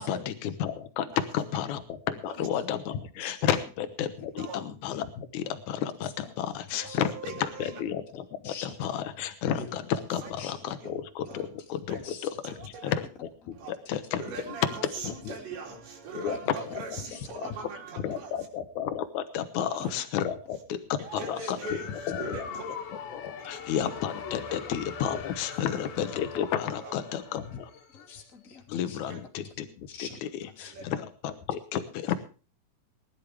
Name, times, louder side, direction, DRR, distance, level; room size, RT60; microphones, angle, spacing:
voice 1, 0.0-7.1 7.6-12.5 12.8-14.2 14.6-15.4 16.1-16.8 17.4-17.5 18.0-21.6 22.1-22.5 23.1-27.7 28.7-30.3 30.6-32.2, left 9 dB, 70° left, 10 dB, 1.8 m, -32 dB
voice 2, 1.1-1.5 2.2-2.5 3.4-3.6 4.4-4.6 6.8-7.8 10.1-10.3 10.7-10.9 11.3-11.5 11.9-12.1 12.4-12.9 13.5-13.7 14.2-18.5 19.6-19.9 20.4-20.6 21.0-22.7 23.4-23.6 24.4-24.6 25.6-25.9 26.7-26.9 29.0-29.2 30.7-30.9, right 4 dB, 80° right, -1 dB, 5.4 m, -41 dB
voice 3, 6.7-7.0 8.4-8.9 9.6-9.8 10.4-10.5 11.3-11.5 12.0-12.3 14.3-14.5 16.3-16.4 17.0-17.3 19.8-20.0 21.4-21.5 22.3-22.6 23.8-23.9 27.9-29.0 29.4-29.5 29.9-30.7 32.1-32.2, left 5 dB, 25° left, 0 dB, 2.5 m, -45 dB
sound 1, 21.6-28.2, left 6 dB, 90° left, 3.6 m, -41 dB
21.0 x 12.0 x 3.4 m, 0.35 s
omnidirectional pair, 4.9 m